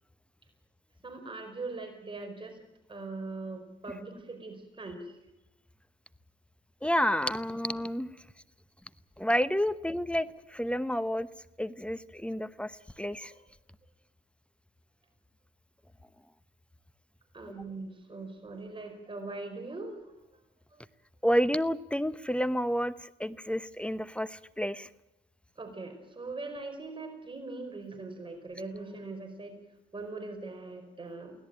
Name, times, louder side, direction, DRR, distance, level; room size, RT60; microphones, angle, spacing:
voice 1, 1.0-2.6 2.9-5.2 13.2-13.4 17.3-20.0 20.7-20.8 25.6-29.6 29.9-31.3, right 3 dB, 25° right, 4 dB, 4.9 m, -41 dB
voice 2, 6.8-8.1 9.2-11.3 11.6-12.7 13.0-13.3 21.2-24.9, equal, 5° left, 15 dB, 0.9 m, -30 dB
24.0 x 17.0 x 9.1 m, 0.91 s
cardioid pair, 90°, 20 cm